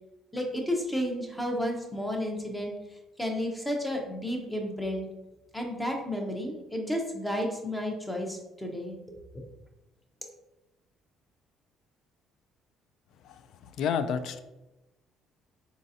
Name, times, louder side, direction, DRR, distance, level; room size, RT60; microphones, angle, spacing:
voice 1, 0.3-5.1 5.5-9.4, equal, 5° left, 2 dB, 0.5 m, -32 dB
voice 2, 13.2-14.4, left 7 dB, 55° left, 11 dB, 0.3 m, -31 dB
4.0 x 3.7 x 2.7 m, 1.0 s
cardioid pair, 170°, 0 cm